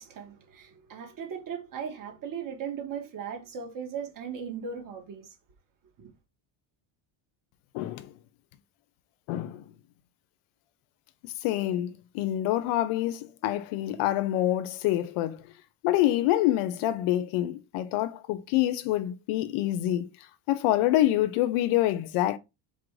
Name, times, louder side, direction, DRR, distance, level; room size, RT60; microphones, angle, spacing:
voice 1, 0.0-5.3 6.0-6.1, right 7 dB, 40° right, 1.5 m, -38 dB
voice 2, 7.7-8.1 9.3-9.6 11.2-15.4 15.8-20.1 20.5-22.4, left 14 dB, 90° left, 0.7 m, -26 dB
4.1 x 2.6 x 4.7 m
cardioid pair, 135°, 48 cm